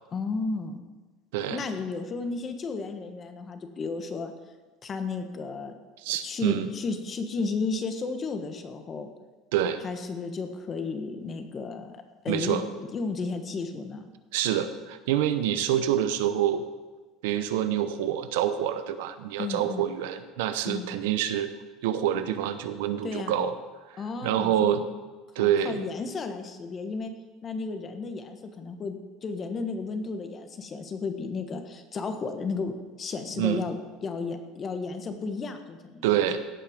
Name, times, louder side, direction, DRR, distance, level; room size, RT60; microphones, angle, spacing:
voice 1, 0.1-0.8 1.5-4.3 4.8-5.7 6.2-9.1 9.8-12.0 12.2-14.1 19.4-19.9 20.7-20.9 23.0-23.4 24.0-24.9 25.4-27.1 27.4-33.7 34.0-36.3, left 4 dB, 35° left, 7 dB, 1.4 m, -33 dB
voice 2, 1.3-1.6 6.0-6.7 9.5-9.8 12.3-12.6 14.3-16.7 17.2-21.5 21.8-23.5 23.9-24.9 25.4-25.8 33.4-33.7 36.0-36.4, right 10 dB, 80° right, 11 dB, 0.8 m, -26 dB
16.5 x 5.8 x 5.2 m, 1.3 s
supercardioid pair, 105°, 0 cm